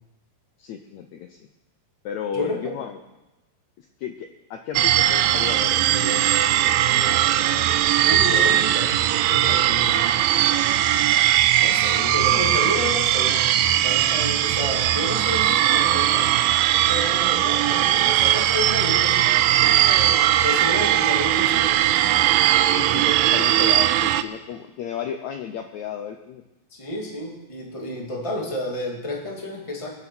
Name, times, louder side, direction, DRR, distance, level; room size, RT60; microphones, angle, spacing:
voice 1, 0.6-1.4 2.0-3.0 4.0-6.2 9.5-9.7 22.8-26.4, left 8 dB, 80° left, 5 dB, 1.6 m, -33 dB
voice 2, 2.3-2.7 8.0-9.0 9.3-10.0 11.6-13.4 13.8-16.4 16.9-19.2 19.6-22.0 26.7-29.9, left 1 dB, 10° left, -1 dB, 1.7 m, -31 dB
sound 1, 4.8-24.2, right 12 dB, 80° right, 2.3 m, -19 dB
22.5 x 7.8 x 6.2 m, 1.0 s
omnidirectional pair, 4.2 m